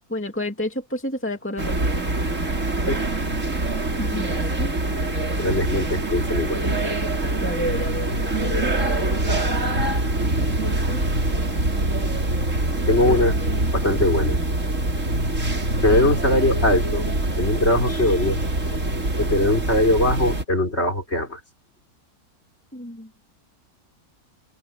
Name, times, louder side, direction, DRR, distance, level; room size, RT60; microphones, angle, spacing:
voice 1, 0.1-2.1 4.0-4.3 4.6-4.7 7.4-8.1 10.9-11.1 13.1-13.2 22.7-23.1, equal, 10° left, 2.2 m, -29 dB
sound 1, 1.6-20.4, right 2 dB, 50° right, 4.3 m, -24 dB
voice 2, 5.4-6.6 12.9-13.4 13.7-14.4 15.8-17.0 17.4-18.4 19.2-21.4, left 1 dB, 40° left, 5.8 m, -21 dB
open air
omnidirectional pair, 1.6 m